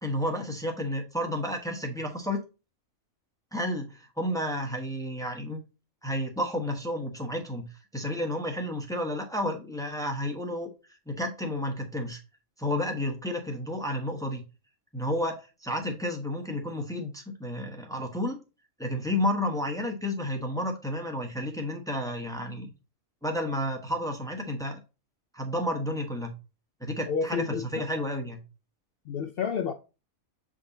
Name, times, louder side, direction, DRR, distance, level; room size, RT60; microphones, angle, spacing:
voice 1, 0.0-2.4 3.5-5.6 6.0-10.7 11.1-12.2 12.6-14.4 14.9-18.4 18.8-22.7 23.2-24.8 25.3-26.3 26.8-28.4, left 1 dB, 5° left, 0.9 m, -31 dB
voice 2, 27.1-27.9 29.1-29.7, left 6 dB, 65° left, 0.5 m, -30 dB
7.1 x 3.7 x 4.0 m
omnidirectional pair, 1.5 m